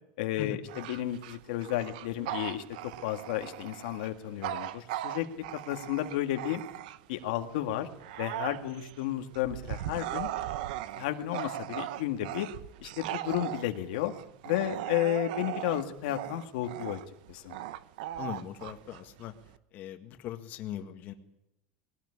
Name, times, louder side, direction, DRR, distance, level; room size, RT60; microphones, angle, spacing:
voice 1, 0.2-5.3 5.5-6.6 7.1-7.9 8.2-10.3 11.0-12.5 12.8-14.1 14.4-17.0 17.3-17.6, left 13 dB, 85° left, 5 dB, 1.9 m, -32 dB
Bark / Growling, 0.6-7.2 7.7-19.6, right 13 dB, 85° right, 1.0 m, -38 dB
voice 2, 18.2-19.3 19.7-21.1, left 10 dB, 45° left, 6 dB, 1.9 m, -40 dB
21.0 x 17.5 x 9.9 m, 0.85 s
supercardioid pair, 155°, 4 cm